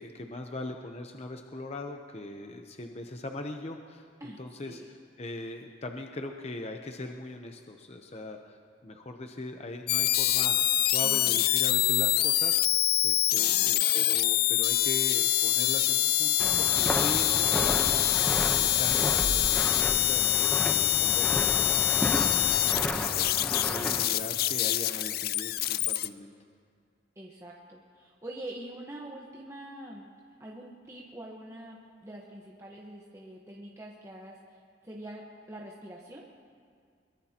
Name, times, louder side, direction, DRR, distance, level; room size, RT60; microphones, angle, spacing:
voice 1, 0.0-4.0 4.4-8.6 8.8-26.3, left 2 dB, 35° left, 4 dB, 0.8 m, -40 dB
sound 1, 9.9-26.1, left 14 dB, 55° left, 0.4 m, -25 dB
voice 2, 11.0-11.4 13.3-14.0 24.1-24.2 27.2-30.1 30.4-36.4, right 1 dB, 15° right, -2 dB, 1.1 m, -45 dB
Walk footsteps, 16.4-24.1, equal, 5° left, 0.9 m, -32 dB
22.0 x 22.0 x 2.9 m, 2.1 s
head